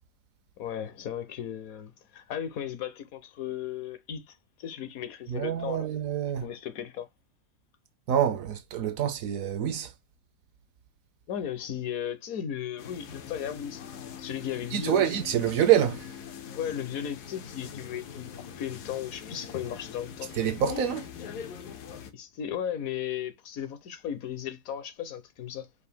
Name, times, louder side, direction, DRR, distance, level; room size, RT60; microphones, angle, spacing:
voice 1, 0.6-5.9 6.4-7.1 11.3-13.8 14.2-15.1 16.5-20.3 22.1-25.7, left 9 dB, 70° left, 1.1 m, -36 dB
voice 2, 5.3-6.5 8.1-9.9 14.7-16.1 20.4-21.1, right 10 dB, 70° right, 1.0 m, -26 dB
sound 1, 12.8-22.1, left 7 dB, 85° left, 1.4 m, -42 dB
4.7 x 2.6 x 3.4 m
omnidirectional pair, 1.7 m